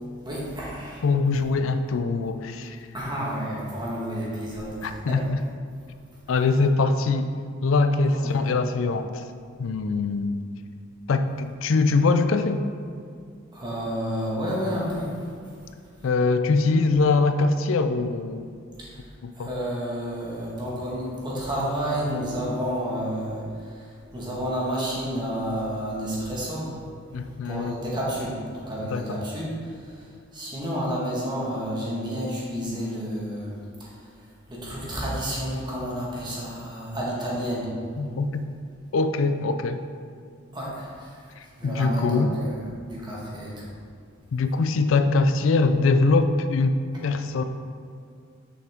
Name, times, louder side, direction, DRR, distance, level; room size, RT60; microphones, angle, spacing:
voice 1, 0.2-1.1 2.9-5.2 8.1-8.4 13.5-15.5 18.8-19.1 19.3-26.8 27.1-27.2 27.4-37.7 40.5-43.7, equal, 20° right, -6 dB, 1.6 m, -31 dB
voice 2, 1.0-2.8 4.8-5.4 6.3-7.3 7.6-9.2 9.6-10.4 11.1-12.6 16.0-18.5 19.2-19.5 27.1-27.7 28.9-29.2 38.0-38.5 38.9-39.8 41.6-42.3 44.3-46.8 47.0-47.4, left 3 dB, 75° left, 9 dB, 0.4 m, -22 dB
6.3 x 5.7 x 3.6 m, 2.3 s
head